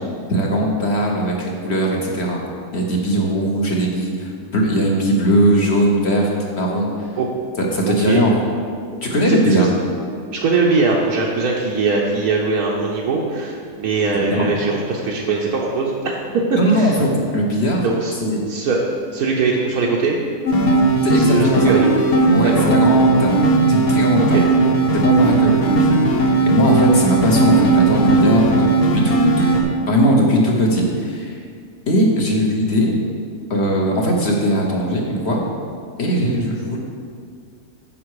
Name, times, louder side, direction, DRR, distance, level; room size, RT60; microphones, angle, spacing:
voice 1, 0.3-2.4 2.7-6.3 6.6-7.2 7.6-8.3 9.0-9.7 14.3-14.5 16.6-17.8 18.2-18.4 21.0-21.7 22.3-24.4 24.9-29.5 29.9-31.4 31.9-33.0 33.5-35.4 36.0-36.8, equal, 45° left, -1 dB, 1.2 m, -19 dB
voice 2, 9.3-9.7 10.3-16.2 16.5-17.0 17.8-18.1 18.5-18.8 19.1-20.2 21.1-21.9 24.3-24.4, right 4 dB, 75° right, -3 dB, 1.4 m, -20 dB
sound 1, 20.5-29.6, right 3 dB, 70° left, 1.4 m, -16 dB
9.5 x 5.8 x 4.8 m, 2.1 s
omnidirectional pair, 1.6 m